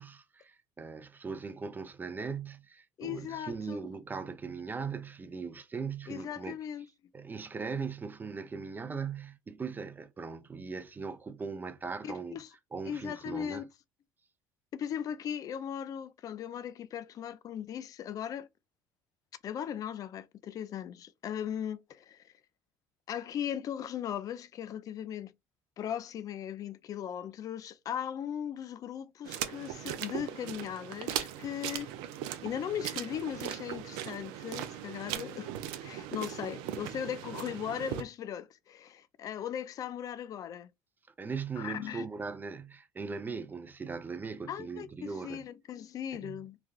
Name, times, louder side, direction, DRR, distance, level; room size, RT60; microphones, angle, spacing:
voice 1, 0.0-6.6 7.1-12.4 12.7-13.6 41.2-45.4 46.1-46.4, right 5 dB, 25° right, 0.5 m, -39 dB
voice 2, 3.0-3.9 6.1-6.9 12.0-12.5 12.9-13.6 14.7-18.5 19.4-22.3 23.1-25.3 25.8-31.9 32.4-35.5 35.8-40.7 41.6-42.1 44.5-46.6, left 9 dB, 45° left, 0.4 m, -38 dB
sound 1, 29.3-38.0, right 11 dB, 75° right, 0.4 m, -39 dB
3.2 x 2.3 x 2.4 m
supercardioid pair, 85°, 8 cm